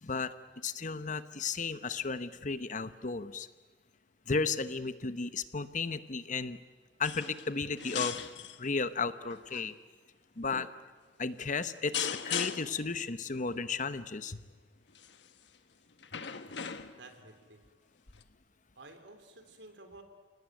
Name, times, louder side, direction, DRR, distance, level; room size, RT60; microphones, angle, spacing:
voice 1, 0.0-3.5 4.3-6.6 7.0-8.2 8.6-9.7 10.4-10.7 11.2-14.4, left 4 dB, 45° left, 12 dB, 1.0 m, -34 dB
sound 1, 7.0-7.5 7.8-8.6 9.3-9.7 10.5-10.7 11.9-12.8 14.9-15.3 16.0-17.1 18.2-18.3, left 8 dB, 80° left, 1.3 m, -38 dB
voice 2, 17.0-17.6 18.8-20.0, right 2 dB, 80° right, 6 dB, 3.5 m, -52 dB
29.5 x 19.0 x 9.3 m, 1.4 s
head